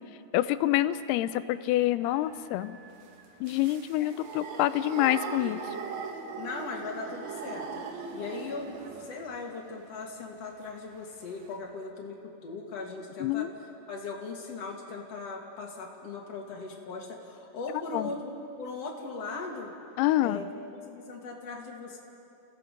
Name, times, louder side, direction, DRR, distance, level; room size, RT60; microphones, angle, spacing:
voice 1, 0.3-2.8 3.4-5.6 13.2-13.5 17.9-18.1 20.0-20.4, left 15 dB, 85° left, 13 dB, 2.6 m, -27 dB
sound 1, 2.0-9.4 11.0-11.1 11.3-11.5, right 5 dB, 60° right, 2.1 m, -40 dB
voice 2, 6.4-7.7 8.1-13.5 13.9-18.3 18.6-19.7 20.2-20.5 20.7-22.0, left 3 dB, 45° left, 0 dB, 2.6 m, -39 dB
29.5 x 17.0 x 5.3 m, 2.7 s
omnidirectional pair, 4.7 m